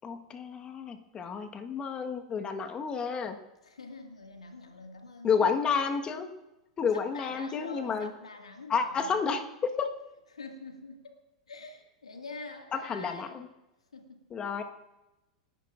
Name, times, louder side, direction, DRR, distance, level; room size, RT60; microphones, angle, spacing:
voice 1, 0.0-3.4 5.2-6.3 6.8-8.1 8.7-9.9 12.7-13.5 14.3-14.6, left 6 dB, 25° left, 6 dB, 1.4 m, -30 dB
voice 2, 3.6-5.6 6.9-9.2 10.3-11.1 11.5-13.4 13.9-14.3, left 3 dB, 80° left, 4 dB, 2.1 m, -45 dB
29.5 x 11.0 x 2.5 m, 1.0 s
figure-of-eight pair, 95°, 3 cm